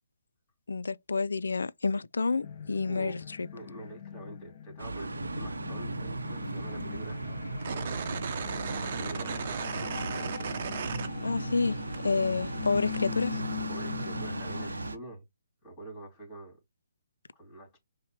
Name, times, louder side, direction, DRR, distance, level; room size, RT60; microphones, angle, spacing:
voice 1, 0.7-3.5 11.2-13.4, left 4 dB, 75° left, 0.3 m, -29 dB
sound 1, 2.4-14.9, left 9 dB, 40° left, 1.2 m, -42 dB
voice 2, 2.8-3.2 3.5-7.4 7.6-8.1 8.8-10.4 13.7-15.2 15.6-16.6 17.3-17.8, right 2 dB, 20° left, 2.5 m, -45 dB
sound 2, 4.8-15.0, right 2 dB, 80° right, 0.6 m, -37 dB
sound 3, 7.6-11.7 11.9-13.0, right 6 dB, 45° right, 0.7 m, -36 dB
5.6 x 2.1 x 2.9 m
figure-of-eight pair, 140°, 0 cm